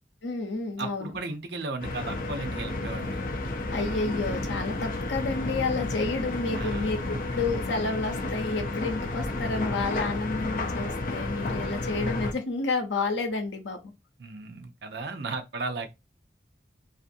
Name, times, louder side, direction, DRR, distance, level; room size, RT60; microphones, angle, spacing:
voice 1, 0.2-1.2 3.7-13.9, left 3 dB, 80° left, 0.7 m, -30 dB
voice 2, 0.8-3.2 6.5-6.9 14.2-15.9, right 3 dB, 65° right, 0.5 m, -35 dB
sound 1, 1.8-12.3, left 2 dB, 45° left, 0.4 m, -31 dB
2.5 x 2.5 x 2.6 m
head